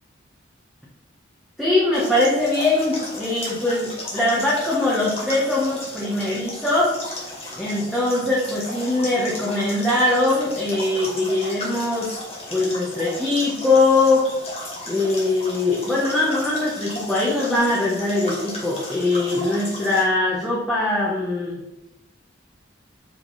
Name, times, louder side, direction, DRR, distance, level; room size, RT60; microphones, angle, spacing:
voice 1, 1.6-7.0 7.2-12.2 12.5-14.3 14.9-21.6, left 2 dB, ahead, -7 dB, 1.0 m, -22 dB
sound 1, 1.9-20.0, left 1 dB, 30° left, 2.0 m, -35 dB
7.9 x 3.7 x 4.0 m, 0.94 s
head